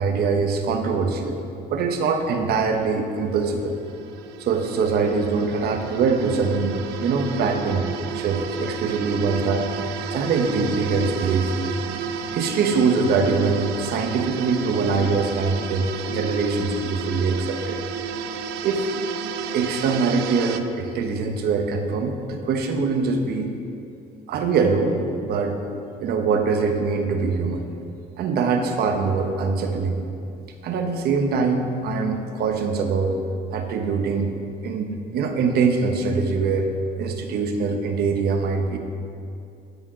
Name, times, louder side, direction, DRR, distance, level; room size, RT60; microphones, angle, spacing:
voice 1, 0.0-1.4 1.7-3.8 4.4-7.9 8.1-9.7 10.1-11.6 12.3-17.8 18.6-18.9 19.5-23.5 24.3-25.6 26.0-27.7 28.2-30.1 30.6-33.2 33.5-34.4 34.6-36.7 37.0-38.8, right 4 dB, 70° right, 5 dB, 1.0 m, -23 dB
sound 1, 2.9-20.6, right 6 dB, 85° right, 0.5 m, -32 dB
11.5 x 4.3 x 6.2 m, 2.6 s
cardioid pair, 110°, 17 cm